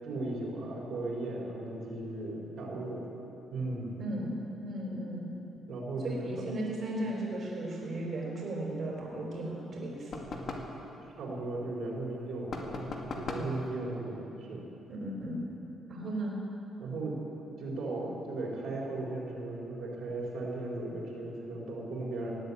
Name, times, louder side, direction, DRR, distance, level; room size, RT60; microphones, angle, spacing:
voice 1, 0.0-3.0 3.5-4.0 5.7-6.3 11.2-12.8 13.1-14.6 16.8-17.2 17.6-22.3, right 2 dB, 70° right, -4 dB, 4.2 m, -36 dB
voice 2, 4.0-5.3 6.0-10.1 13.3-13.5 14.9-15.4 15.9-16.4, right 1 dB, 50° right, -2 dB, 4.0 m, -36 dB
sound 1, 10.1-10.8 12.5-13.6, left 2 dB, 55° left, 2.0 m, -38 dB
18.0 x 9.1 x 8.5 m, 3.0 s
cardioid pair, 90°, 0 cm